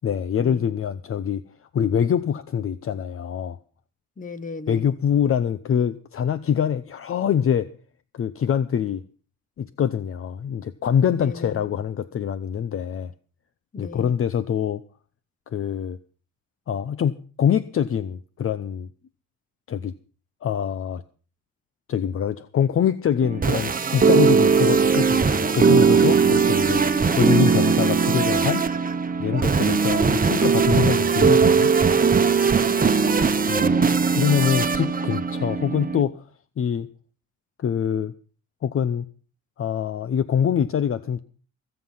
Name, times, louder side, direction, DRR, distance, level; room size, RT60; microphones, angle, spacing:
voice 1, 0.0-1.4 1.7-3.6 4.7-7.7 8.1-9.0 9.6-13.1 13.8-14.8 15.5-16.0 16.7-18.9 19.7-19.9 20.4-21.0 21.9-26.8 27.2-28.6 29.2-31.7 33.5-33.8 34.1-36.2 36.6-36.9 37.6-38.1 38.6-39.1 39.6-41.2, left 8 dB, 45° left, 0.8 m, -24 dB
voice 2, 4.2-4.8 11.2-11.6 13.7-14.1 32.5-33.4, left 3 dB, 25° left, 1.3 m, -37 dB
sound 1, 23.2-36.0, right 5 dB, 30° right, 1.2 m, -19 dB
23.5 x 7.9 x 5.6 m
cardioid pair, 90°, 30 cm